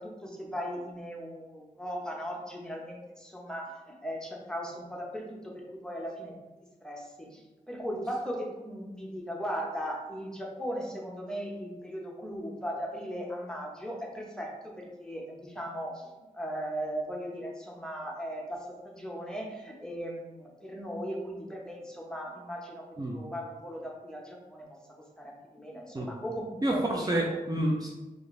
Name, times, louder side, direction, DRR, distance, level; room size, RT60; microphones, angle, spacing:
voice 1, 0.0-6.3 6.8-22.8 23.1-24.7 25.2-26.8, equal, 5° left, -2 dB, 0.8 m, -38 dB
voice 2, 26.6-27.9, right 1 dB, 25° right, -2 dB, 0.5 m, -28 dB
4.8 x 2.6 x 3.1 m, 1.1 s
wide cardioid pair, 90°, 15 cm